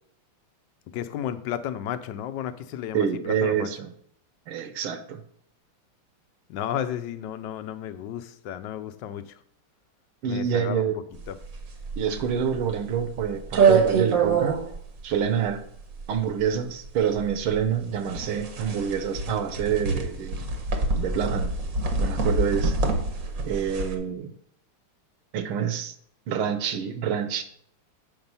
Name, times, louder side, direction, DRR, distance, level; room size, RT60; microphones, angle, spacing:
voice 1, 0.9-3.7 6.5-9.4 10.3-11.4, left 10 dB, 70° left, 11 dB, 1.1 m, -33 dB
voice 2, 2.9-3.9 4.5-5.2 10.2-11.0 12.0-14.6 15.0-15.6 16.1-20.5 21.0-21.5 22.0-22.8 23.4-24.3 25.3-25.9 26.3-27.4, right 8 dB, 75° right, 9 dB, 1.7 m, -27 dB
sound 1, 11.2-23.9, right 4 dB, 50° right, 1.1 m, -26 dB
7.9 x 5.3 x 5.5 m, 0.67 s
omnidirectional pair, 2.4 m